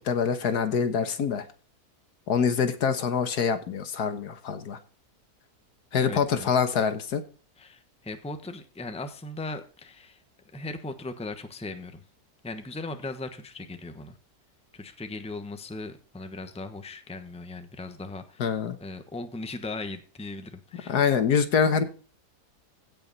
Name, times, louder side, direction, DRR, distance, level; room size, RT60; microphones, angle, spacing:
voice 1, 0.0-1.4 2.3-4.8 5.9-7.2 18.4-18.7 20.9-21.8, left 6 dB, 80° left, 9 dB, 1.8 m, -25 dB
voice 2, 6.0-6.5 7.6-10.2 10.5-12.0 12.4-14.2 14.7-18.5 18.8-21.0, left 2 dB, 5° left, 8 dB, 0.9 m, -38 dB
16.0 x 5.7 x 4.0 m, 0.38 s
omnidirectional pair, 1.7 m